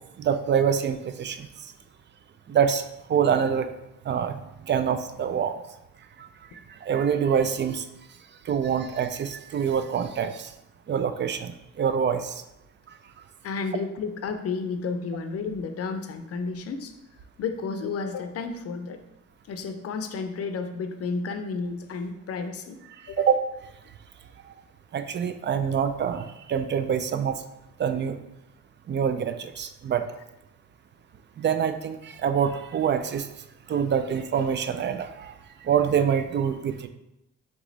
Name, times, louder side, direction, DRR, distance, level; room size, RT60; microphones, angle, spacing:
voice 1, 0.2-1.5 2.5-3.7 4.1-4.4 4.6-5.5 6.2-6.3 6.8-7.8 8.5-10.5 10.9-12.4 23.2-23.4 24.9-27.4 27.8-28.2 28.9-30.1 31.4-33.3 33.7-35.3 35.6-36.9, right 7 dB, 40° right, 9 dB, 0.4 m, -25 dB
voice 2, 13.4-16.9 17.4-19.0 19.5-22.8 23.1-23.3, left 4 dB, 50° left, 7 dB, 0.5 m, -32 dB
3.6 x 3.0 x 3.9 m, 0.88 s
cardioid pair, 90°, 30 cm